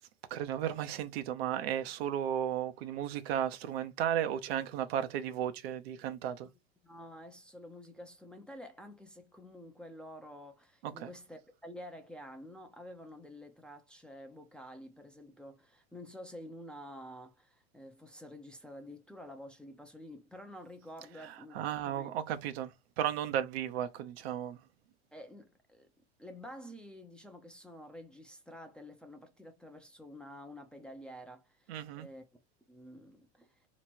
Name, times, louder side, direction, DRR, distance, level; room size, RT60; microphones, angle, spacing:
voice 1, 0.3-6.5 10.8-11.1 21.2-24.6 31.7-32.1, right 10 dB, 65° right, 0.7 m, -34 dB
voice 2, 6.8-22.1 25.1-25.9 26.2-32.2 32.7-33.7, equal, 5° left, 0.6 m, -49 dB
3.2 x 3.1 x 4.3 m
hypercardioid pair, 100°, 34 cm